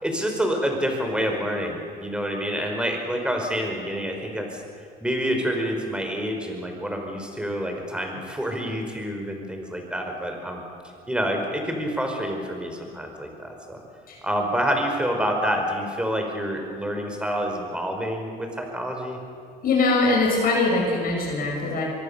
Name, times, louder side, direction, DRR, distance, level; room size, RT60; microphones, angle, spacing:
voice 1, 0.0-4.6 5.0-10.6 11.1-13.8 14.2-19.2, equal, 5° right, 3 dB, 5.0 m, -27 dB
voice 2, 19.6-21.8, left 3 dB, 60° left, -1 dB, 5.9 m, -22 dB
25.0 x 22.0 x 7.0 m, 2.4 s
cardioid pair, 110°, 17 cm